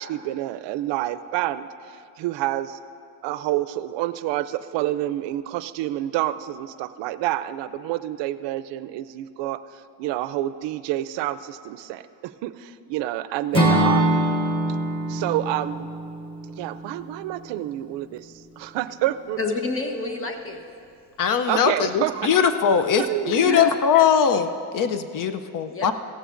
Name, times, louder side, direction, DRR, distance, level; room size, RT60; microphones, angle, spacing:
voice 1, 0.0-1.7 2.2-2.8 3.2-9.6 10.0-14.3 15.1-15.9 16.6-19.4 21.5-22.3 23.0-23.7, right 14 dB, 80° right, 14 dB, 0.5 m, -28 dB
Acoustic guitar / Strum, 13.5-17.6, right 1 dB, 10° left, 1.3 m, -24 dB
voice 2, 19.4-20.6 23.4-23.8 25.7-25.9, left 3 dB, 30° left, 3 dB, 1.1 m, -29 dB
voice 3, 21.2-25.9, left 7 dB, 50° left, 9 dB, 0.6 m, -21 dB
16.0 x 14.0 x 2.5 m, 2.4 s
cardioid pair, 125°, 44 cm